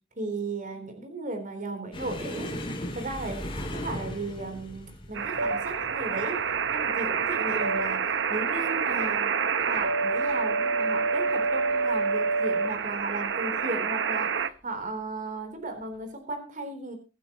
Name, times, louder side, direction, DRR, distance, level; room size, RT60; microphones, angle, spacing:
voice 1, 0.2-2.5 2.9-6.4 6.7-9.4 9.6-17.0, right 2 dB, 45° right, 6 dB, 3.7 m, -35 dB
sound 1, 1.9-9.1 9.4-9.8 10.1-10.3 11.2-11.7 12.7-12.9 14.2-14.4, equal, 30° left, 3.3 m, -38 dB
sound 2, 5.1-14.5, right 5 dB, 65° right, 0.9 m, -27 dB
23.5 x 9.3 x 3.0 m, 0.31 s
head